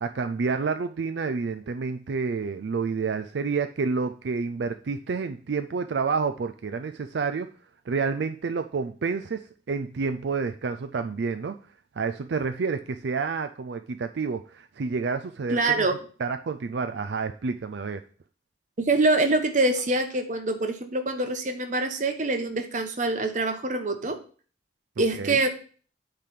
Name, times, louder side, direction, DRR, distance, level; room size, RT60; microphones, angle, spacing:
voice 1, 0.0-7.5 7.9-11.6 12.0-15.9 16.2-18.0 25.2-25.4, right 4 dB, 75° right, 9 dB, 0.4 m, -29 dB
voice 2, 15.5-16.0 18.8-24.2 25.0-25.5, right 2 dB, 45° right, 6 dB, 1.0 m, -25 dB
8.9 x 3.4 x 5.9 m, 0.41 s
head